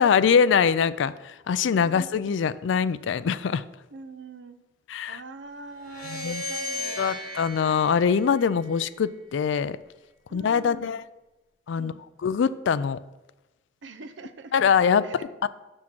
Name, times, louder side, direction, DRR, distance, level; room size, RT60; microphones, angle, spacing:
voice 1, 0.0-3.6 4.9-5.2 6.1-6.4 7.0-9.8 10.3-11.0 11.7-11.9 12.2-13.0 14.5-15.0 15.4-15.5, left 6 dB, 75° left, 15 dB, 0.4 m, -23 dB
voice 2, 1.6-2.1 3.9-4.6 5.1-7.1 10.3-11.0 11.8-12.0 13.8-14.7 15.0-15.4, right 3 dB, 70° right, 9 dB, 0.6 m, -44 dB
sound 1, 5.8-9.1, left 1 dB, 50° left, 1.6 m, -36 dB
6.2 x 5.8 x 6.1 m, 1.0 s
head